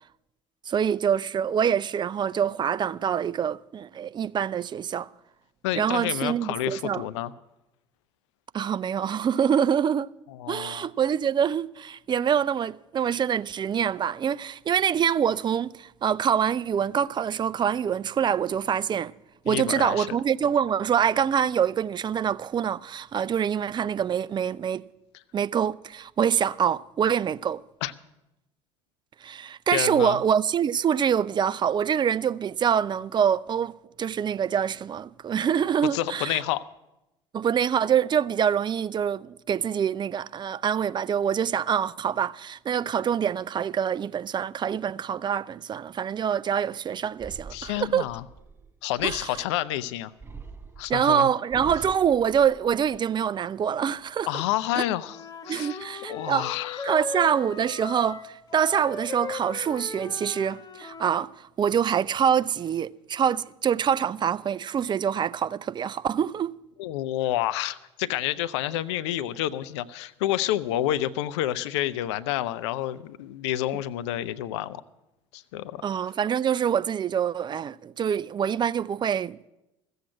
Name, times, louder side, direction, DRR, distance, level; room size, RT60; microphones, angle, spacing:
voice 1, 0.7-5.1 5.8-7.0 8.5-10.1 10.5-19.1 19.4-24.8 25.3-27.6 29.2-36.4 37.3-48.1 49.0-49.3 50.9-54.3 54.8-54.9 55.5-56.5 56.8-66.5 75.8-79.5, right 8 dB, 30° right, 0.4 m, -25 dB
voice 2, 5.6-7.3 10.3-10.9 19.5-20.2 27.8-27.9 29.7-30.2 35.9-36.6 47.5-48.2 48.8-50.1 50.8-51.3 54.3-56.9 66.8-74.8 75.3-75.8, left 13 dB, 70° left, 0.5 m, -29 dB
sound 1, 47.2-49.6 50.2-53.2 53.7-54.2, right 4 dB, 15° right, 0.8 m, -45 dB
Wind instrument woodwind instrument, 55.0-61.3, left 4 dB, 25° left, 1.3 m, -37 dB
14.0 x 7.9 x 7.4 m
hypercardioid pair, 65°, 15 cm